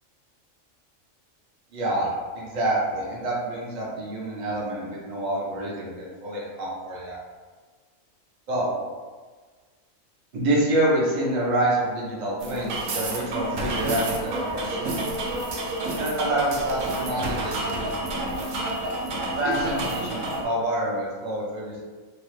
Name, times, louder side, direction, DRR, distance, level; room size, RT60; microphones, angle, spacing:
voice 1, 1.7-7.2 8.5-8.7 10.3-15.0 16.0-17.9 19.3-21.8, right 1 dB, 40° right, -5 dB, 0.8 m, -27 dB
sound 1, 12.4-20.4, right 2 dB, 75° right, 0.9 m, -29 dB
2.9 x 2.3 x 3.2 m, 1.4 s
omnidirectional pair, 1.4 m